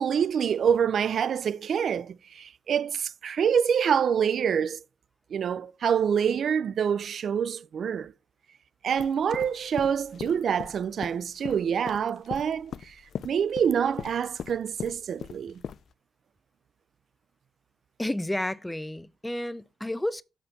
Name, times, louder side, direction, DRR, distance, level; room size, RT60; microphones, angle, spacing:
voice 1, 0.0-4.8 5.3-8.1 8.8-12.9 13.2-15.6, right 7 dB, 70° right, 0.4 m, -26 dB
sound 1, 9.0-15.8, left 8 dB, 75° left, 0.3 m, -39 dB
voice 2, 18.0-20.2, left 1 dB, 10° left, 0.6 m, -31 dB
7.9 x 4.4 x 5.8 m
supercardioid pair, 50°, 0 cm